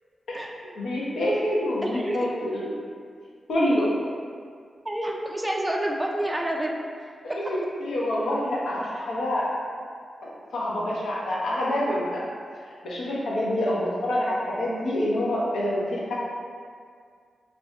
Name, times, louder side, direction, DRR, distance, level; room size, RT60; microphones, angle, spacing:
voice 1, 0.3-2.7 3.5-3.9 7.2-9.5 10.2-12.3 12.8-16.1, left 1 dB, 85° left, -6 dB, 0.6 m, -27 dB
voice 2, 1.8-2.3 4.8-6.7, right 1 dB, 15° right, 0 dB, 0.4 m, -28 dB
2.4 x 2.2 x 3.6 m, 2.1 s
cardioid pair, 55°, 0 cm